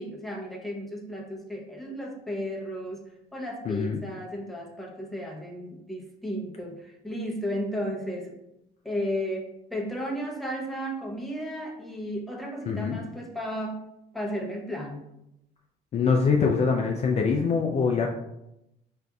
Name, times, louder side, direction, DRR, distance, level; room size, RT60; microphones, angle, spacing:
voice 1, 0.0-3.0 3.3-8.4 8.8-13.8 14.1-15.0, equal, ahead, -1 dB, 0.7 m, -34 dB
voice 2, 3.7-4.0 12.7-13.0 15.9-18.1, left 5 dB, 40° left, 1 dB, 0.4 m, -24 dB
5.0 x 2.5 x 2.3 m, 0.86 s
cardioid pair, 105°, 18 cm